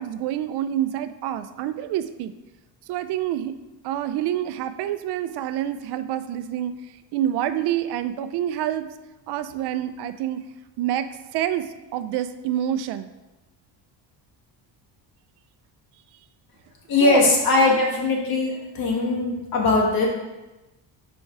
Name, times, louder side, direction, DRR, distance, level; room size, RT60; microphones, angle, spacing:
voice 1, 0.0-2.3 2.9-3.5 3.8-6.7 7.1-8.9 9.3-10.4 10.8-13.1 17.0-17.3, right 11 dB, 70° right, 11 dB, 0.5 m, -27 dB
voice 2, 16.9-20.1, left 3 dB, 55° left, -1 dB, 1.7 m, -20 dB
5.5 x 4.4 x 4.7 m, 1.0 s
cardioid pair, 135°, 42 cm